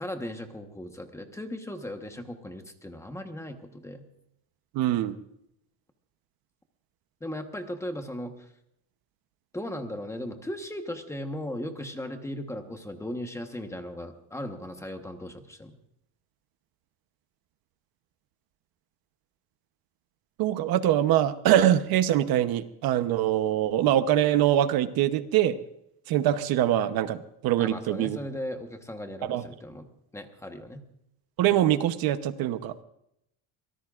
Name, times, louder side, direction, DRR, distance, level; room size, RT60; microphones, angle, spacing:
voice 1, 0.0-4.1 7.2-8.5 9.5-15.7 27.6-30.8, left 1 dB, 5° left, 5 dB, 1.2 m, -37 dB
voice 2, 4.7-5.2 20.4-25.6 26.1-28.2 29.2-29.5 31.4-32.7, right 12 dB, 55° right, 11 dB, 1.0 m, -23 dB
24.5 x 18.0 x 2.5 m, 0.79 s
cardioid pair, 165°, 42 cm